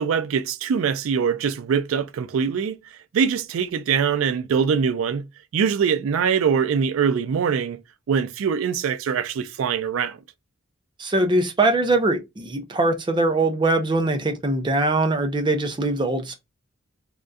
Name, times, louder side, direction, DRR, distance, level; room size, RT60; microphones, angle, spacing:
voice 1, 0.0-2.8 3.1-5.3 5.5-7.8 8.1-10.2, right 6 dB, 80° right, 0.3 m, -23 dB
voice 2, 11.0-16.3, right 2 dB, 25° right, 0.5 m, -22 dB
3.5 x 2.6 x 2.2 m
head